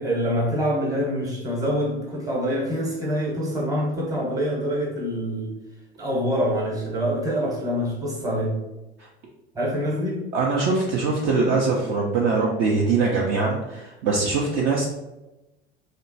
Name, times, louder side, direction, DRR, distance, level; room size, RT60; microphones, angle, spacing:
voice 1, 0.0-5.5 6.0-8.6 9.5-10.3, equal, 10° right, -3 dB, 0.9 m, -25 dB
voice 2, 10.3-14.9, right 4 dB, 40° right, -2 dB, 0.5 m, -22 dB
2.8 x 2.1 x 2.6 m, 1.0 s
figure-of-eight pair, 75°, 31 cm